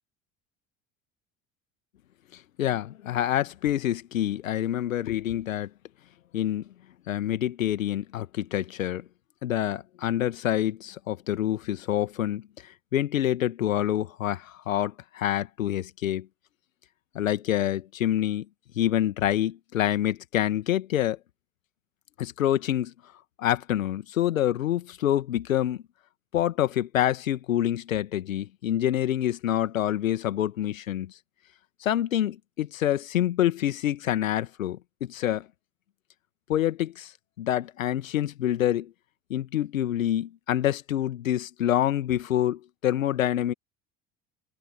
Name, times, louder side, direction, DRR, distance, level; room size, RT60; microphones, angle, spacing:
voice 1, 2.6-5.7 6.3-6.7 7.1-9.0 9.4-16.3 17.1-18.5 18.8-21.2 22.2-22.9 23.4-25.8 26.3-31.1 31.8-35.5 36.5-37.1 37.4-38.9 39.3-43.5, left 12 dB, 70° left, 2.0 m, -27 dB
figure-of-eight pair, 65°, 41 cm